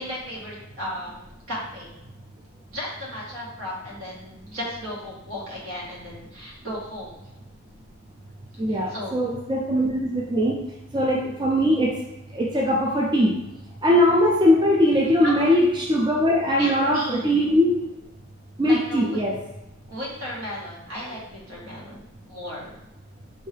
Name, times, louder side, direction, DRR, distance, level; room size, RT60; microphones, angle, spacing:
voice 1, 0.0-1.9 2.7-7.2 8.7-9.3 15.2-15.5 16.6-17.2 18.7-19.2 19.9-22.0 22.3-22.8, left 1 dB, 70° right, -5 dB, 1.5 m, -35 dB
voice 2, 8.6-10.6 10.9-11.9 12.3-13.3 13.8-17.7 18.6-19.4, equal, 20° right, -2 dB, 0.4 m, -20 dB
5.4 x 2.7 x 3.3 m, 0.92 s
head